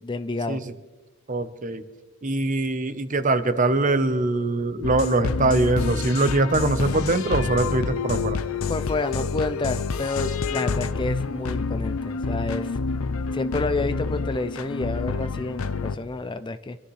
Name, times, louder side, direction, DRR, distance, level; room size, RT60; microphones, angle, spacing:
voice 1, 0.0-0.6 8.7-12.8 13.3-16.8, left 2 dB, 20° left, 12 dB, 0.4 m, -29 dB
voice 2, 1.3-1.8 2.2-8.4, right 2 dB, 40° right, 10 dB, 0.9 m, -23 dB
sound 1, 4.8-16.0, left 4 dB, 75° left, 0.6 m, -28 dB
25.5 x 13.0 x 3.2 m, 1.2 s
head